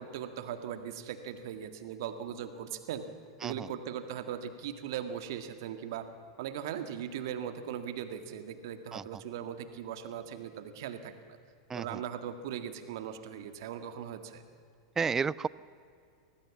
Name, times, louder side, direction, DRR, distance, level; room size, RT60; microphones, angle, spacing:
voice 1, 0.0-3.0 3.4-6.1 6.4-11.1 11.7-14.4, right 9 dB, 60° right, 8 dB, 1.9 m, -39 dB
voice 2, 11.7-12.0 15.0-15.5, right 5 dB, 20° right, 21 dB, 0.5 m, -31 dB
25.0 x 18.5 x 7.2 m, 2.4 s
hypercardioid pair, 90°, 2 cm